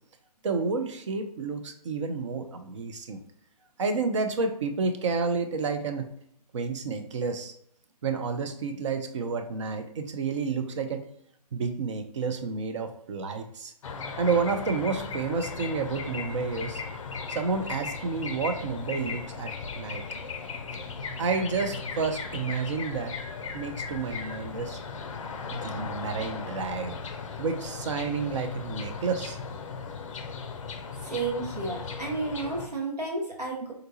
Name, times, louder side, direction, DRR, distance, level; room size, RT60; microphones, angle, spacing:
voice 1, 0.4-3.2 3.8-6.1 6.5-7.5 8.0-11.0 11.5-13.7 14.2-16.8 17.3-20.0 21.2-23.1 23.5-24.8 25.5-27.0 27.4-29.4, right 4 dB, 45° right, 6 dB, 0.5 m, -30 dB
sound 1, 13.8-32.7, left 5 dB, 50° left, 0.4 m, -37 dB
voice 2, 31.0-33.7, right 3 dB, 80° right, 0 dB, 1.2 m, -32 dB
3.8 x 2.3 x 2.7 m, 0.69 s
figure-of-eight pair, 140°, 21 cm